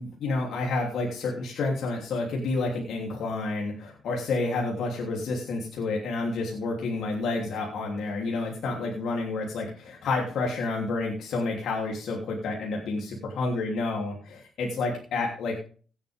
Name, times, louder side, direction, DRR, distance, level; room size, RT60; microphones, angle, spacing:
voice 1, 0.0-15.6, left 3 dB, 70° left, -1 dB, 3.1 m, -29 dB
16.5 x 8.9 x 3.6 m, 0.41 s
cardioid pair, 90°, 0 cm